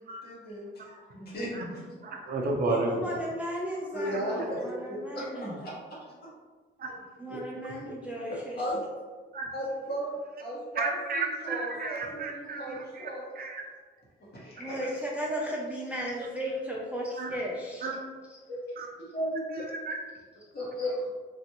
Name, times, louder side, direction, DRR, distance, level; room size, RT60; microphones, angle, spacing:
voice 1, 0.0-2.0 3.9-5.7 6.1-6.3 7.3-7.4 7.7-7.9 8.3-8.8 9.5-13.3 14.2-14.8 18.5-18.6 19.1-19.6 20.5-21.1, equal, 55° left, -6 dB, 1.4 m, -36 dB
voice 2, 2.0-3.0 6.8-6.9 9.3-9.5 10.7-13.6 17.2-17.4 17.8-18.0 18.8-18.9 19.5-20.0, right 3 dB, 50° right, 0 dB, 0.6 m, -32 dB
voice 3, 2.7-5.6 7.2-8.6 14.6-17.9, equal, 5° right, -4 dB, 0.4 m, -35 dB
3.1 x 2.5 x 2.8 m, 1.4 s
cardioid pair, 90°, 20 cm